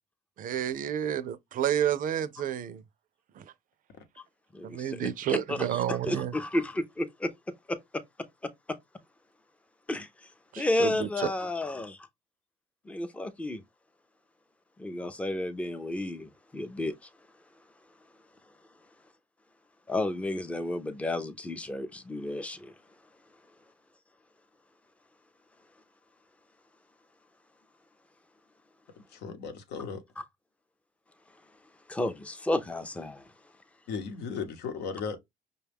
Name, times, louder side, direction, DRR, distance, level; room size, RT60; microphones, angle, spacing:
voice 1, 0.4-2.8 4.6-6.3 10.5-11.3, right 10 dB, 55° right, 0.4 m, -30 dB
voice 2, 4.5-7.3 7.7-8.0 8.4-8.8 9.9-10.1 10.6-12.0 12.9-13.6 14.8-17.0 19.9-22.7 31.9-33.2, left 1 dB, 5° left, 0.4 m, -32 dB
voice 3, 29.1-30.0 33.9-35.2, left 5 dB, 80° left, 0.9 m, -36 dB
5.3 x 2.2 x 3.4 m
cardioid pair, 110°, 17 cm